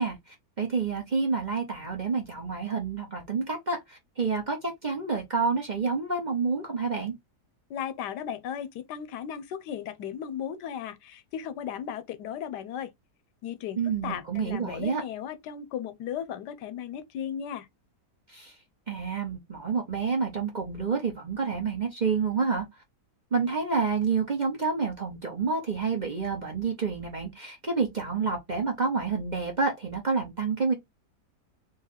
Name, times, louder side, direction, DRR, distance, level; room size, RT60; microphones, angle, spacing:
voice 1, 0.0-7.1 13.8-15.0 18.3-18.5 18.9-22.6 23.3-30.7, right 5 dB, 35° right, 0.9 m, -29 dB
voice 2, 7.7-12.9 13.4-17.7, left 9 dB, 85° left, 1.3 m, -36 dB
3.9 x 2.8 x 4.0 m
omnidirectional pair, 1.8 m